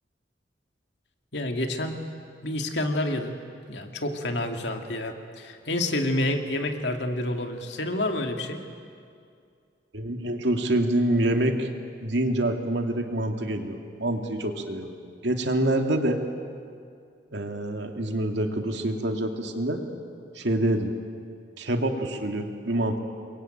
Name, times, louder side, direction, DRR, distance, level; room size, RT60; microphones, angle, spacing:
voice 1, 1.3-2.0 2.4-3.4 3.7-8.6, left 1 dB, 70° left, 4 dB, 2.3 m, -28 dB
voice 2, 9.9-11.7 12.0-15.0 15.2-16.2 17.3-19.8 20.3-20.9 21.6-23.0, right 1 dB, 70° right, 4 dB, 2.4 m, -26 dB
29.0 x 22.0 x 9.1 m, 2.3 s
head